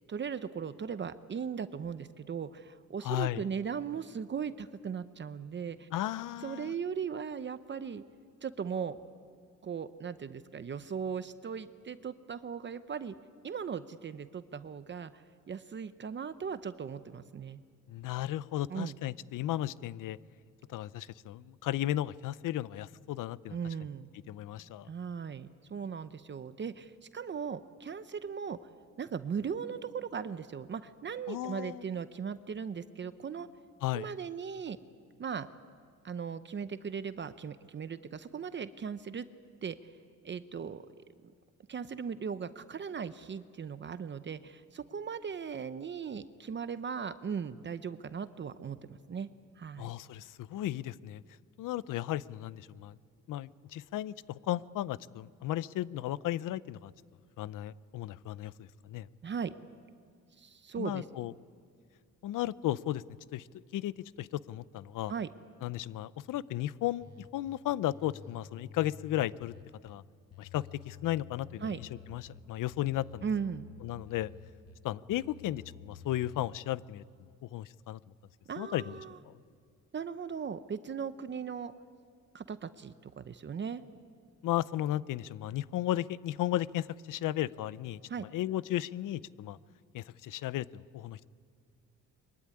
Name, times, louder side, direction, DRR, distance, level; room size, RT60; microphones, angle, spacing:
voice 1, 0.1-5.9 6.4-8.0 8.4-9.0 9.6-13.1 13.4-17.6 18.7-19.0 23.5-24.1 24.9-28.6 29.0-33.5 33.9-34.8 35.2-35.5 36.0-39.3 39.6-39.9 40.2-40.8 41.7-49.3 49.6-49.9 59.2-59.5 60.4-61.0 65.1-65.3 71.6-71.8 73.2-73.7 78.5-79.2 79.9-81.7 82.3-83.8 88.1-88.3, right 6 dB, 35° right, 12 dB, 0.8 m, -38 dB
voice 2, 3.0-3.4 5.9-6.7 17.9-20.2 20.7-23.6 24.3-24.9 31.3-31.9 33.8-34.1 49.8-51.2 51.6-53.0 53.3-56.9 57.4-59.1 60.8-61.3 62.2-63.0 63.3-63.5 63.7-65.1 65.6-69.5 69.8-70.0 70.4-73.2 73.8-74.3 74.8-77.0 77.4-78.0 78.6-79.0 79.2-79.3 84.4-88.0 88.3-89.6 89.9-91.3, left 14 dB, 85° left, 18 dB, 0.7 m, -35 dB
sound 1, 67.0-67.6 67.9-70.0 70.3-72.4 72.7-74.8 75.1-76.6, left 7 dB, 55° left, 1.7 m, -51 dB
24.0 x 23.5 x 9.9 m, 2.1 s
cardioid pair, 125°, 31 cm